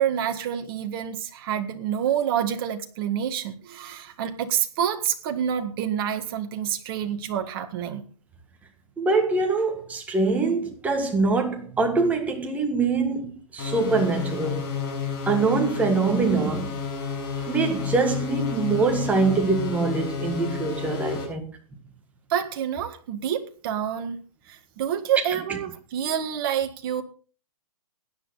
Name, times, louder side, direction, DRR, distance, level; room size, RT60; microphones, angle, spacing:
voice 1, 0.0-8.0 22.3-24.2 24.5-27.0, right 9 dB, 35° right, 1.8 m, -27 dB
voice 2, 9.0-14.7 15.3-16.7 17.4-21.6 25.5-25.6, right 4 dB, 5° right, 1.7 m, -24 dB
sound 1, 13.6-21.2, left 6 dB, 35° left, 7.0 m, -31 dB
16.5 x 10.5 x 4.1 m
hypercardioid pair, 155°, 19 cm